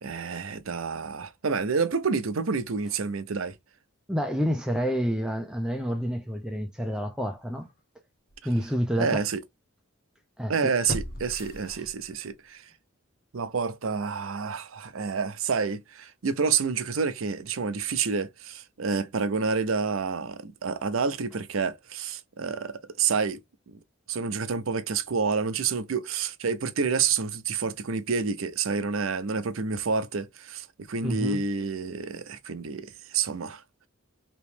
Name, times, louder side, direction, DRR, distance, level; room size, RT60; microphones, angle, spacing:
voice 1, 0.0-3.6 8.9-9.4 10.5-12.7 13.3-23.4 23.7-23.8 24.1-33.6, right 5 dB, 85° right, 0.6 m, -29 dB
voice 2, 4.1-7.7 8.4-9.2 10.4-10.7 31.0-31.4, equal, 5° right, 0.5 m, -28 dB
sound 1, 7.6-7.7 8.3-8.4 10.9-12.3 12.7-12.8, left 1 dB, 45° left, 0.8 m, -37 dB
3.0 x 3.0 x 3.3 m
head